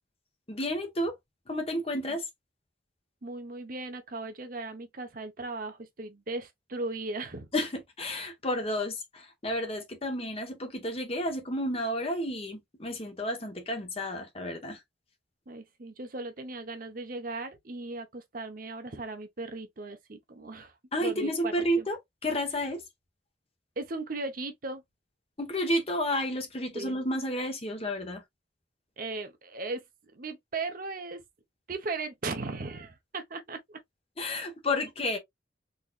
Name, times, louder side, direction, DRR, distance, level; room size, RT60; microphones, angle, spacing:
voice 1, 0.5-1.1 1.5-2.2 7.5-14.8 20.9-22.8 25.4-28.2 34.2-35.2, equal, 30° left, 1.1 m, -31 dB
voice 2, 3.2-7.5 15.5-20.7 21.0-21.9 23.8-24.8 26.7-27.0 29.0-29.8 30.1-31.2 31.7-33.8, right 3 dB, 50° right, 0.8 m, -37 dB
4.0 x 3.1 x 2.3 m
head